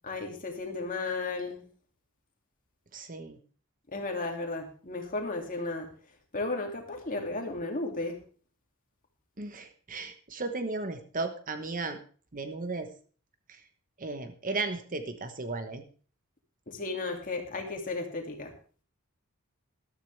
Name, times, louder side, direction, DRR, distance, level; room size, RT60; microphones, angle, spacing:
voice 1, 0.0-1.6 3.9-5.9 6.3-8.2 16.7-18.5, left 3 dB, 40° left, 3 dB, 2.6 m, -34 dB
voice 2, 2.9-3.4 9.4-12.0 12.3-12.9 14.0-15.8, right 3 dB, 40° right, 8 dB, 1.1 m, -35 dB
13.5 x 13.0 x 3.4 m, 0.41 s
head